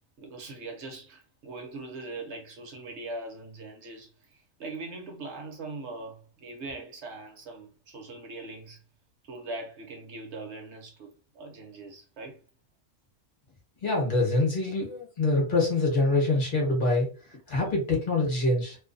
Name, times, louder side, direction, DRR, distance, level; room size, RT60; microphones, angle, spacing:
voice 1, 0.2-8.8 9.2-12.4 17.5-17.7, right 2 dB, 60° right, 1.0 m, -41 dB
voice 2, 13.8-18.8, left 2 dB, 45° left, 1.0 m, -25 dB
2.5 x 2.2 x 2.5 m
omnidirectional pair, 1.3 m